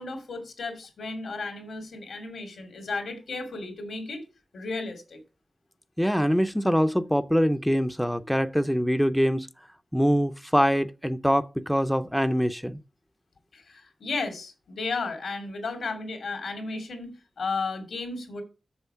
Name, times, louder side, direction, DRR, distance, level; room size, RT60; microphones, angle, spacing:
voice 1, 0.0-4.2 4.5-5.2 13.5-18.4, left 3 dB, 85° left, 2.6 m, -34 dB
voice 2, 6.0-9.5 9.9-12.8, equal, ahead, 0.5 m, -24 dB
7.1 x 6.8 x 5.6 m
wide cardioid pair, 100°, 0 cm